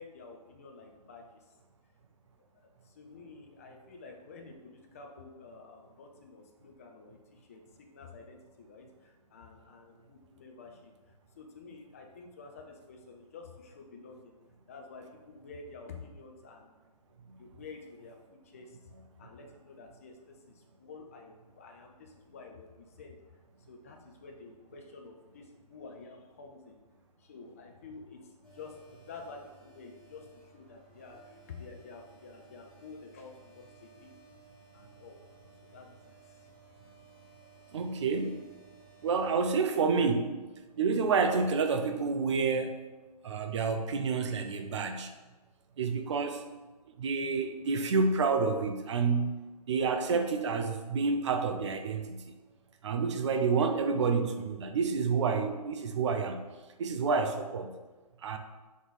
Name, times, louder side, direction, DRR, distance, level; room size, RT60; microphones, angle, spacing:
voice 1, 0.0-1.5 2.5-14.4 14.7-16.7 17.4-18.9 19.2-23.4 23.7-26.8 27.2-34.2 34.7-37.0 37.5-37.6, left 4 dB, 20° left, 2 dB, 0.3 m, -50 dB
sound 1, 28.4-39.5, right 4 dB, ahead, 1.4 m, -58 dB
voice 2, 37.7-38.4 39.0-40.3 40.8-42.8 43.2-45.1 45.8-46.4 47.0-49.3 49.7-52.2 52.8-56.5 56.8-57.7 58.2-58.4, right 4 dB, 45° right, 6 dB, 0.4 m, -29 dB
3.6 x 3.0 x 4.0 m, 1.2 s
figure-of-eight pair, 140°, 21 cm